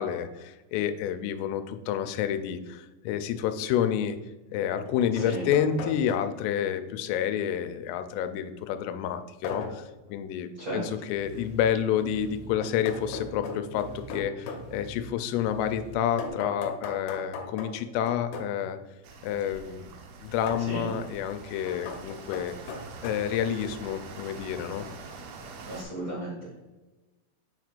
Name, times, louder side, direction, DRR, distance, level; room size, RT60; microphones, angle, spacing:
voice 1, 0.0-4.2 4.5-18.8 19.2-19.9 20.2-22.6 23.0-24.9, left 9 dB, 90° left, 9 dB, 3.1 m, -29 dB
sound 1, 3.3-3.4 4.5-6.6 9.4-9.9 12.6-14.7 16.2-18.6 20.5-20.7 21.7-23.1, left 4 dB, 75° left, 2.8 m, -38 dB
voice 2, 5.1-5.5 10.6-10.9 20.6-20.9 25.6-26.5, right 2 dB, 65° right, -8 dB, 1.2 m, -35 dB
sound 2, 11.1-16.3, right 3 dB, 55° left, 1.5 m, -47 dB
sound 3, 19.0-25.8, right 4 dB, 85° right, 2.1 m, -44 dB
7.4 x 6.0 x 2.4 m, 1.1 s
omnidirectional pair, 5.6 m